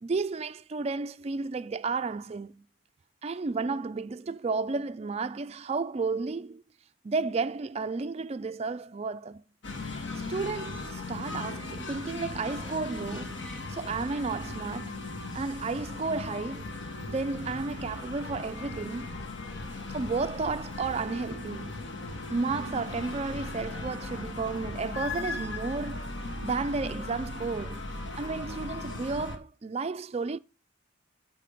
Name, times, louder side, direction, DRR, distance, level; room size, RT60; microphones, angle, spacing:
voice 1, 0.0-2.6 3.2-6.6 7.0-9.4 10.3-13.4 13.7-15.1 15.3-16.7 17.1-19.2 19.9-21.8 22.3-26.1 26.4-27.9 28.2-30.4, right 4 dB, 30° right, 0.3 m, -32 dB
sound 1, 9.6-29.4, left 2 dB, 60° left, 1.4 m, -38 dB
8.2 x 6.0 x 5.0 m
head